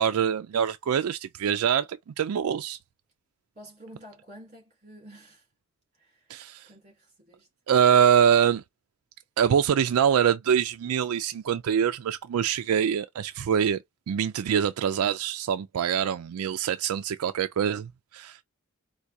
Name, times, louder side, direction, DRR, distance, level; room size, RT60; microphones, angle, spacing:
voice 1, 0.0-1.9 2.2-2.8 6.3-6.7 7.7-8.6 9.4-13.8 14.1-18.4, right 8 dB, 85° right, 0.4 m, -24 dB
voice 2, 3.5-5.5 6.0-6.3 6.7-7.5, equal, 35° right, 2.5 m, -49 dB
4.6 x 2.2 x 2.6 m
head